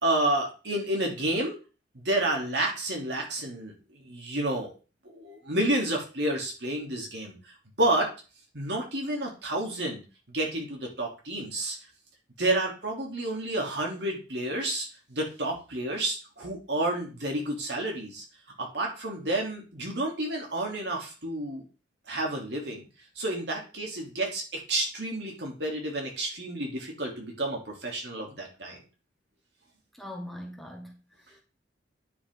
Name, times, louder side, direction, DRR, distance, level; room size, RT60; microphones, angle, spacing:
voice 1, 0.0-1.6 1.9-4.8 5.0-8.1 8.5-11.8 12.4-18.2 18.6-21.6 22.1-22.9 23.1-28.8, right 1 dB, 70° right, 0 dB, 3.1 m, -30 dB
voice 2, 29.9-31.4, left 1 dB, ahead, 0 dB, 1.5 m, -42 dB
9.7 x 6.7 x 3.8 m, 0.32 s
head